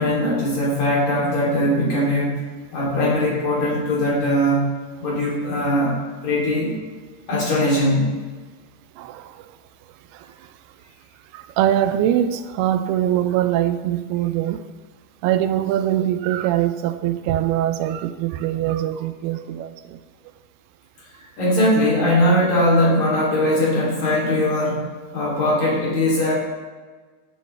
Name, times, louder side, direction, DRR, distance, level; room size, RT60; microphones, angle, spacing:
voice 1, 0.0-2.4 2.7-4.6 5.0-6.0 6.2-6.8 7.3-8.1 21.4-24.9 25.1-26.3, left 1 dB, 50° left, -5 dB, 4.0 m, -20 dB
voice 2, 9.0-9.4 10.1-10.3 11.3-14.6 15.2-20.0, right 12 dB, 85° right, 10 dB, 2.5 m, -22 dB
11.5 x 9.0 x 3.3 m, 1.4 s
omnidirectional pair, 4.6 m